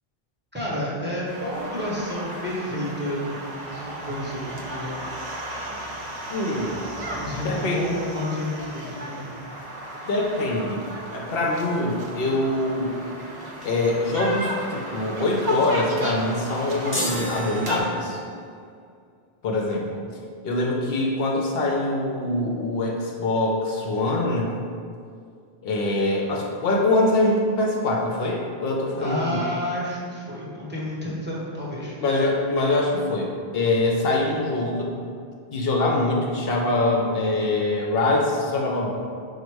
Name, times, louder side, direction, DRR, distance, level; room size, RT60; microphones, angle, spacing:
voice 1, 0.5-5.0 7.1-9.3 29.0-32.0, left 1 dB, 10° right, -7 dB, 0.8 m, -30 dB
sound 1, 1.3-17.8, right 1 dB, 50° right, 0.6 m, -35 dB
voice 2, 6.3-6.8 7.4-7.9 10.0-10.8 11.1-12.9 13.6-18.2 19.4-20.0 20.4-24.6 25.6-29.4 32.0-34.9 35.5-38.9, left 2 dB, 70° left, -1 dB, 0.8 m, -24 dB
sound 2, 16.9-18.5, equal, 15° left, 0.4 m, -31 dB
5.1 x 2.2 x 4.5 m, 2.3 s
omnidirectional pair, 1.1 m